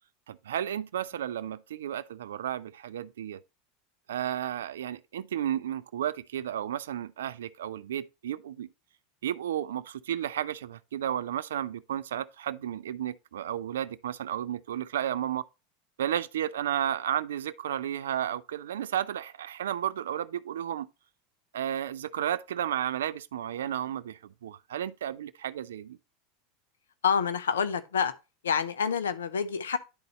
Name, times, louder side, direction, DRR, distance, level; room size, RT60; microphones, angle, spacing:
voice 1, 0.3-3.4 4.1-8.7 9.2-15.4 16.0-20.9 21.5-26.0, right 10 dB, 80° right, 0.3 m, -33 dB
voice 2, 27.0-28.1 28.4-29.8, left 7 dB, 85° left, 0.7 m, -27 dB
10.5 x 4.0 x 3.0 m
hypercardioid pair, 90°, 0 cm